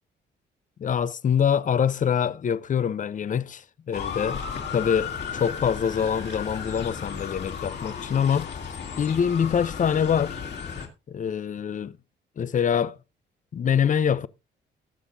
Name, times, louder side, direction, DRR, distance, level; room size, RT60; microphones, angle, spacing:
voice 1, 0.8-4.4 4.7-8.5 9.0-10.4 11.1-12.0 12.4-13.0 13.5-14.3, left 7 dB, 40° left, 0.6 m, -25 dB
Motor vehicle (road) / Siren, 3.9-10.9, left 6 dB, 60° left, 2.6 m, -34 dB
19.0 x 7.1 x 2.7 m
cardioid pair, 90°, 20 cm